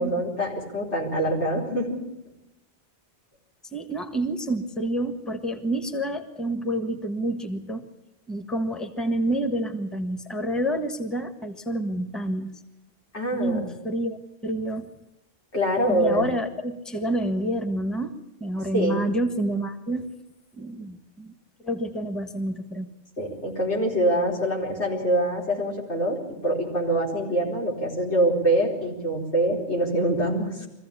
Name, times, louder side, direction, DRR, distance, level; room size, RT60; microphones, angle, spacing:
voice 1, 0.0-2.0 13.1-13.6 15.5-16.2 18.7-19.0 23.2-30.7, right 1 dB, 85° left, -2 dB, 4.9 m, -25 dB
voice 2, 3.7-7.8 8.3-12.6 13.3-14.9 15.9-20.1 20.6-21.3 21.6-22.9, right 1 dB, ahead, 7 dB, 1.5 m, -28 dB
23.5 x 15.0 x 8.5 m, 0.89 s
omnidirectional pair, 1.1 m